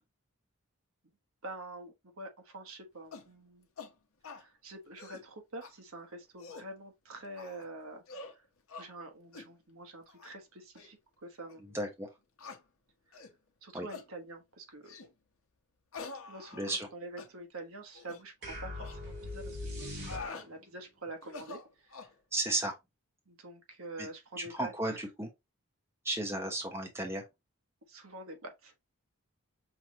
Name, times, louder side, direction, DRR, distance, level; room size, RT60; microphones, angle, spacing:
voice 1, 1.4-3.7 4.3-8.0 8.3-8.4 8.8-11.8 13.6-15.1 16.3-21.9 23.3-25.0 27.9-28.7, right 2 dB, 70° right, 1.1 m, -46 dB
sound 1, 3.1-3.3 3.8-3.9 4.2-4.4 4.9-5.3 5.6-5.7 6.2-6.7 7.4-7.7 8.1-8.4 8.7-8.9 9.3-9.5 10.1-10.3 10.7-10.9 11.5-11.6 12.4-12.6 13.1-13.3 13.9-14.1 14.8-15.1 15.9-16.9 17.2-17.3 17.9-18.2 18.8-19.0 19.8-20.5 21.2-22.1, left 4 dB, 70° left, 0.8 m, -46 dB
voice 2, 11.7-12.1 13.7-13.9 16.5-16.9 22.3-22.8 24.0-24.1 24.4-25.3 26.0-27.2, right 1 dB, 10° right, 0.9 m, -34 dB
sound 2, 18.4-20.7, left 1 dB, 50° right, 2.4 m, -41 dB
5.8 x 3.2 x 2.8 m
head